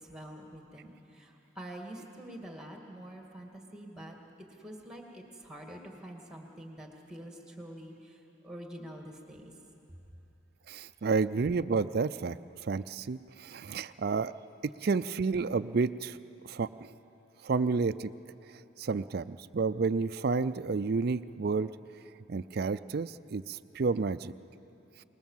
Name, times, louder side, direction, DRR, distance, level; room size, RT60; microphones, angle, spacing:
voice 1, 0.0-4.2 4.6-8.2 8.4-9.5, right 1 dB, 5° right, 2 dB, 2.2 m, -46 dB
voice 2, 10.7-12.4 12.6-14.3 14.8-16.2 16.5-16.7 17.4-18.1 18.8-21.7 22.3-24.3, right 4 dB, 50° right, 12 dB, 0.4 m, -30 dB
26.0 x 20.0 x 7.3 m, 2.9 s
head